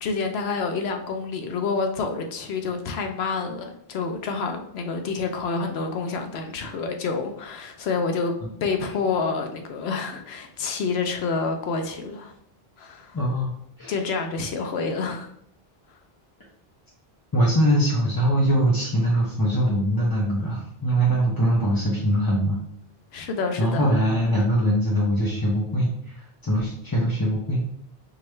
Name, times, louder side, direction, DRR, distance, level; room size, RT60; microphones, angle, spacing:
voice 1, 0.0-8.3 8.6-12.3 12.8-13.2 13.9-15.3 23.1-23.9, left 4 dB, 85° left, 5 dB, 0.9 m, -28 dB
voice 2, 13.1-13.5 13.8-14.0 17.3-22.6 23.6-27.6, right 1 dB, 25° left, -5 dB, 0.6 m, -22 dB
4.7 x 2.4 x 3.1 m, 0.70 s
omnidirectional pair, 1.0 m